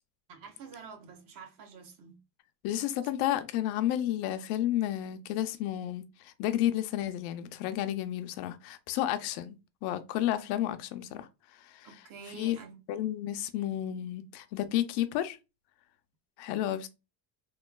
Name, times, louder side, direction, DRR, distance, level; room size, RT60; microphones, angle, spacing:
voice 1, 0.3-2.2 3.0-3.1 11.8-12.8, right 5 dB, 50° right, 0.7 m, -48 dB
voice 2, 2.6-9.6 9.8-11.9 12.4-12.6 12.9-15.4 16.4-16.9, left 12 dB, 70° left, 0.5 m, -31 dB
3.0 x 2.2 x 2.2 m
cardioid pair, 170°, 42 cm